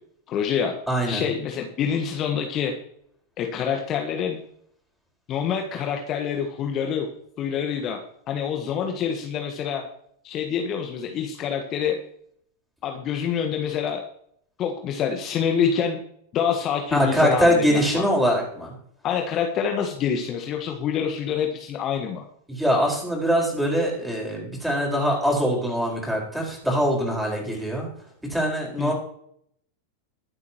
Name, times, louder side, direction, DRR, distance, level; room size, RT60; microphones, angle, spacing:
voice 1, 0.3-0.7 1.1-2.7 3.4-4.4 5.3-7.1 7.4-8.0 8.3-9.8 10.2-12.0 12.8-14.0 14.6-16.0 16.3-18.1 19.0-22.2 28.8-28.9, left 7 dB, 35° left, 3 dB, 1.5 m, -26 dB
voice 2, 0.9-1.2 16.9-18.7 22.5-27.9 28.3-28.9, equal, 5° right, -1 dB, 5.0 m, -23 dB
22.0 x 8.2 x 3.1 m, 0.68 s
figure-of-eight pair, 90°, 0 cm